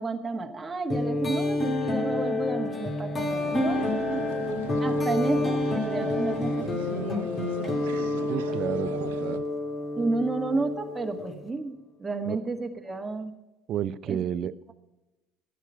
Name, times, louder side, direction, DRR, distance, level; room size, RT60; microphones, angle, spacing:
voice 1, 0.0-4.2 4.8-7.3 10.0-13.3 14.1-14.2, right 3 dB, 20° right, 3 dB, 1.5 m, -31 dB
sound 1, 0.9-11.5, left 2 dB, 35° left, 2.4 m, -29 dB
sound 2, 3.2-9.4, right 10 dB, 80° right, 0.8 m, -40 dB
voice 2, 8.3-9.4 12.2-12.4 13.7-14.7, right 9 dB, 50° right, 17 dB, 0.5 m, -31 dB
12.0 x 9.9 x 5.6 m, 1.0 s
hypercardioid pair, 70°, 0 cm